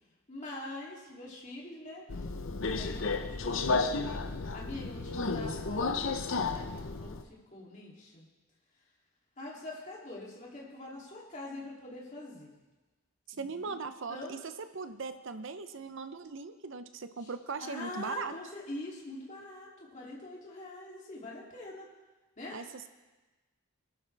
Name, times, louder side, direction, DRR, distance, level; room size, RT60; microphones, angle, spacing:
voice 1, 0.3-2.1 2.8-4.2 4.5-6.2 6.5-8.3 9.4-12.5 13.3-13.7 14.1-14.4 17.2-17.3 17.6-21.9 22.4-22.6, left 2 dB, 35° left, -4 dB, 2.9 m, -44 dB
Subway metro underground, 2.1-7.2, left 3 dB, 60° left, 0.7 m, -32 dB
voice 2, 13.4-14.4 14.7-18.3 22.5-22.9, right 4 dB, 60° right, 10 dB, 0.7 m, -39 dB
20.5 x 12.0 x 3.4 m, 1.2 s
head